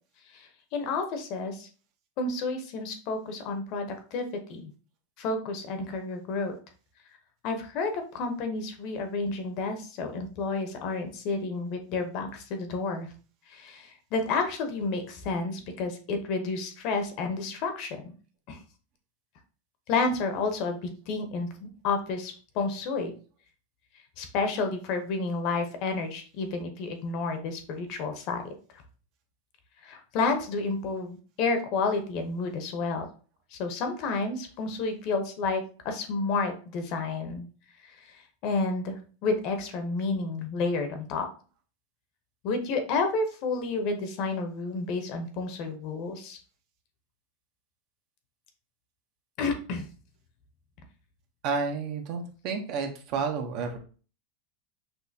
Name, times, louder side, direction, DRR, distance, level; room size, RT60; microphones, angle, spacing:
voice 1, 0.3-1.7 2.2-4.7 5.2-6.5 7.4-13.1 13.5-18.0 18.5-18.6 19.9-21.5 21.8-23.1 24.2-28.5 29.8-33.1 33.5-37.5 37.8-38.2 38.4-41.3 42.4-46.4 49.4-49.9, left 3 dB, 40° left, 6 dB, 0.8 m, -30 dB
voice 2, 51.4-53.8, right 5 dB, 40° right, 4 dB, 0.8 m, -31 dB
6.2 x 2.7 x 2.7 m, 0.38 s
supercardioid pair, 165°, 0 cm